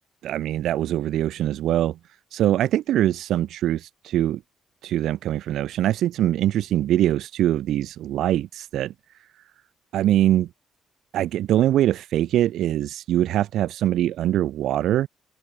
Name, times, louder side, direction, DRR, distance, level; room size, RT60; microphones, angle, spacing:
voice 1, 0.2-2.0 2.3-4.4 4.8-8.9 9.9-10.5 11.1-15.1, right 12 dB, 80° right, 1.5 m, -23 dB
cardioid pair, 90°, 0 cm